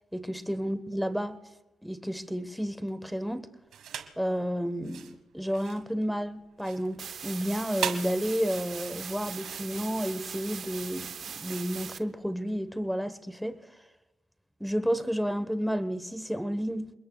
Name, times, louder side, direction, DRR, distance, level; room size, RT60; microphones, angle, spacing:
voice 1, 0.1-1.4 1.8-3.5 4.2-11.1 11.4-13.7 14.6-16.9, equal, ahead, 10 dB, 1.1 m, -31 dB
sound 1, 3.7-4.2 4.7-12.6, right 9 dB, 75° right, 1.5 m, -40 dB
sound 2, 7.0-12.0, right 7 dB, 55° right, 0.8 m, -40 dB
29.5 x 21.0 x 2.3 m, 1.0 s
cardioid pair, 90°, 0 cm